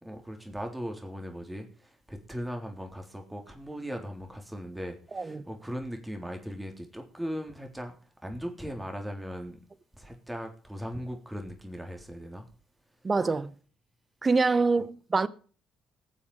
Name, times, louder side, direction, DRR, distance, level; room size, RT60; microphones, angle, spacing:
voice 1, 0.0-8.0 8.2-9.6 9.9-12.5, equal, 10° right, 3.7 m, -38 dB
voice 2, 13.0-13.5 14.2-15.3, right 4 dB, 30° right, 1.1 m, -25 dB
19.5 x 7.3 x 4.9 m
hypercardioid pair, 50°, 0 cm